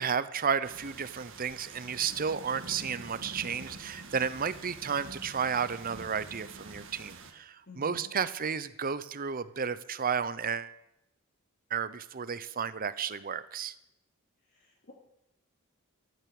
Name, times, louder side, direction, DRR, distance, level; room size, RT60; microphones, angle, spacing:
voice 1, 0.0-10.7 11.7-13.7, right 6 dB, 40° right, 15 dB, 0.7 m, -32 dB
sound 1, 0.6-7.3, right 3 dB, 60° right, 1.6 m, -47 dB
voice 2, 7.7-8.1 14.5-14.9, left 2 dB, 50° left, -3 dB, 2.4 m, -50 dB
13.5 x 9.2 x 8.7 m, 0.84 s
head